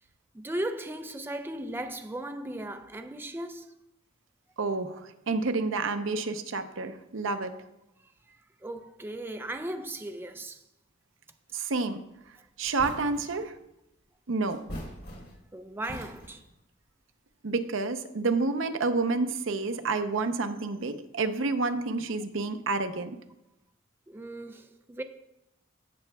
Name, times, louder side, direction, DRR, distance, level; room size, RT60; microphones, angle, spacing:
voice 1, 0.3-3.7 8.6-10.6 15.5-16.4 24.1-25.0, right 1 dB, 10° right, 0.4 m, -37 dB
voice 2, 4.6-7.5 11.5-12.0 12.6-13.5 14.3-14.6 17.4-23.2, right 3 dB, 75° right, 0.7 m, -29 dB
sound 1, 12.2-12.3 12.6-13.4 14.5-15.5 15.8-16.5, equal, 55° left, 3.4 m, -42 dB
16.0 x 7.0 x 2.3 m
head